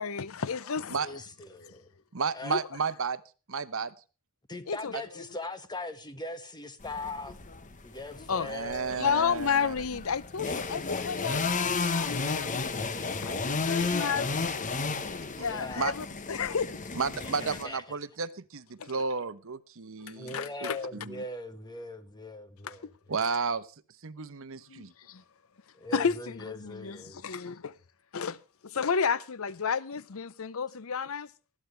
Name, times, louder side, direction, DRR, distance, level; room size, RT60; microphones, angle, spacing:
voice 1, 0.0-1.0 1.6-1.7 2.5-2.6 4.7-4.9 8.3-8.5 9.0-12.8 13.2-14.6 15.1-16.8 18.8-18.9 20.1-20.9 22.6-22.9 24.7-25.2 25.9-27.7 28.1-28.4 28.6-31.3, left 6 dB, 70° left, 0.7 m, -32 dB
voice 2, 1.0-1.9 2.3-2.6 4.5-7.4 7.8-9.1 10.5-12.1 12.5-13.4 13.7-14.4 15.4-16.0 17.1-17.8 20.2-22.9 25.7-27.2, left 2 dB, 20° left, 1.8 m, -41 dB
voice 3, 2.1-3.2 3.5-3.9 4.9-5.0 8.4-9.7 15.2-15.5 15.8-15.9 16.9-21.2 23.1-23.7 24.0-24.9, right 5 dB, 70° right, 1.0 m, -33 dB
sound 1, 6.8-17.6, left 4 dB, 35° left, 1.1 m, -33 dB
20.0 x 14.0 x 3.4 m
head